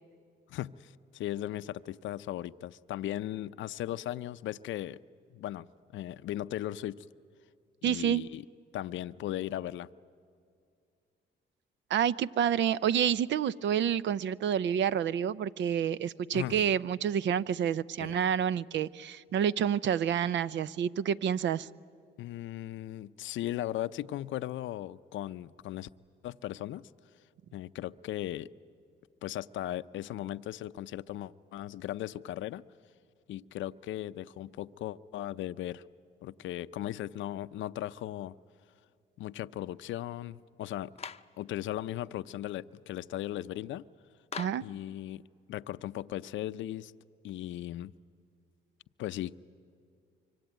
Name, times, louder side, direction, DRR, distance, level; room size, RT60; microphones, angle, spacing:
voice 1, 0.5-5.0 5.3-5.7 5.9-7.1 7.8-8.4 8.7-9.9 16.3-16.7 18.0-18.1 22.2-25.9 26.2-26.9 27.5-28.5 29.2-32.6 33.3-35.8 36.2-38.4 39.2-40.9 41.4-43.8 44.6-45.2 45.5-46.9 47.2-47.9 49.0-49.4, left 13 dB, 75° left, 0.6 m, -37 dB
voice 2, 7.8-8.2 11.9-21.7 44.4-44.6, right 9 dB, 65° right, 0.6 m, -28 dB
Clapping, 41.0-41.3 44.3-44.7, left 6 dB, 30° left, 0.6 m, -41 dB
24.5 x 24.5 x 9.1 m
cardioid pair, 90°, 20 cm